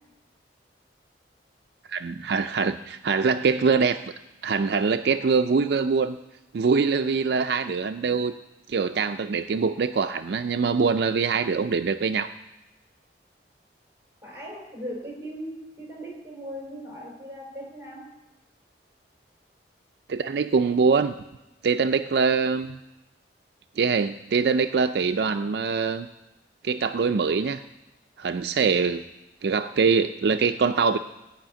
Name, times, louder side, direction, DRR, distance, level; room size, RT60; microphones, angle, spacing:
voice 1, 1.9-4.0 4.4-6.2 6.5-8.3 8.7-12.3 20.1-21.1 21.6-22.8 23.8-26.1 26.6-27.6 28.2-29.0 29.4-31.0, right 5 dB, 60° right, 8 dB, 0.4 m, -23 dB
voice 2, 14.2-18.1, equal, 15° right, -2 dB, 4.4 m, -38 dB
15.5 x 5.7 x 8.9 m, 1.0 s
head